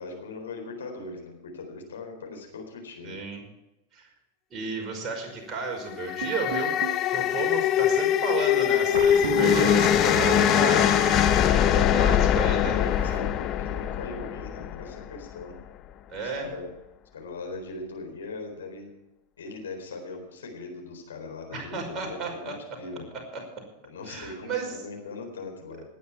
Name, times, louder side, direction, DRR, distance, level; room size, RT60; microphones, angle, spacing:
voice 1, 0.0-3.2 12.4-15.6 16.1-16.7 17.1-18.9 19.4-22.5 22.8-23.1 23.8-25.8, left 3 dB, 65° left, 2 dB, 4.2 m, -40 dB
voice 2, 3.0-3.4 3.9-4.1 4.5-6.8 7.1-11.0 11.6-12.8 16.1-16.5 21.5-22.5 23.1-23.6 24.0-24.7, right 4 dB, 25° right, 1 dB, 5.5 m, -33 dB
sound 1, 5.8-15.1, left 10 dB, 35° left, 0.9 m, -23 dB
sound 2, 6.2-7.1 8.9-12.4 12.7-13.2, right 9 dB, 55° right, 0.6 m, -34 dB
19.5 x 10.0 x 4.7 m, 0.93 s
figure-of-eight pair, 90°, 0 cm